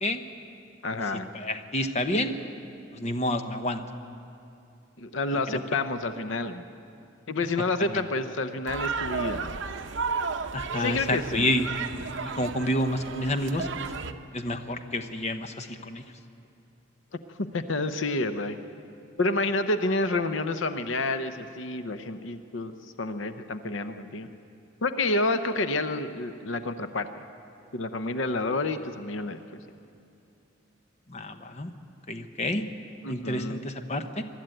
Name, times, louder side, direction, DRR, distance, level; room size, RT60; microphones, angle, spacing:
voice 1, 0.8-1.3 5.0-6.6 7.3-9.6 10.8-11.5 17.4-18.6 19.2-22.7 23.0-24.3 24.8-27.2 27.7-29.4 33.0-33.6, left 2 dB, 70° left, 9 dB, 0.8 m, -29 dB
voice 2, 1.3-2.3 2.9-3.8 5.5-5.6 7.9-8.0 10.5-11.7 12.3-13.7 14.3-16.0 31.1-31.7 32.1-32.6 33.1-34.2, left 1 dB, 35° left, 7 dB, 0.9 m, -29 dB
sound 1, 8.7-14.1, right 5 dB, 65° right, 0.8 m, -33 dB
22.5 x 12.5 x 9.0 m, 2.6 s
head